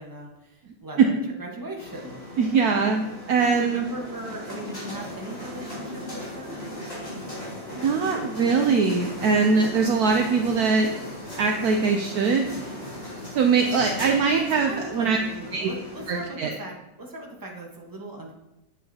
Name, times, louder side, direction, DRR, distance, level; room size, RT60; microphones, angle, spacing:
voice 1, 0.0-2.1 3.4-6.6 14.3-18.3, right 2 dB, 15° right, -1 dB, 1.0 m, -38 dB
sound 1, 1.8-16.2, left 1 dB, 40° left, 3.6 m, -37 dB
voice 2, 2.4-3.8 7.7-10.9 11.4-12.5 13.3-15.2 15.5-15.7 16.1-16.6, right 5 dB, 65° right, 3 dB, 1.0 m, -22 dB
8.5 x 8.2 x 2.8 m, 0.93 s
omnidirectional pair, 1.9 m